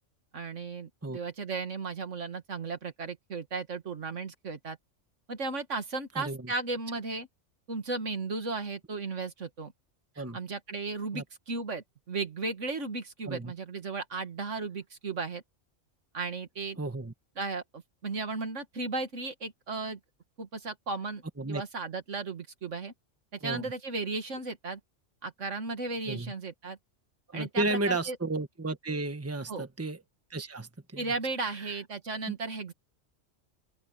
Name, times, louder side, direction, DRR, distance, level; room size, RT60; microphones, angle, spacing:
voice 1, 0.3-4.8 5.3-7.3 7.7-9.7 10.2-15.4 16.1-16.8 17.4-20.0 20.4-21.2 21.5-22.9 23.3-24.8 25.2-26.8 27.3-28.2 29.5-29.7 31.0-32.7, right 3 dB, 75° right, 2.2 m, -35 dB
voice 2, 6.2-6.5 10.2-10.4 11.1-11.2 13.3-13.5 16.8-17.1 21.4-21.6 23.4-23.7 26.1-26.3 27.3-30.0 30.3-31.0 31.6-31.8 32.3-32.4, right 2 dB, 10° right, 1.4 m, -33 dB
open air
omnidirectional pair, 1.3 m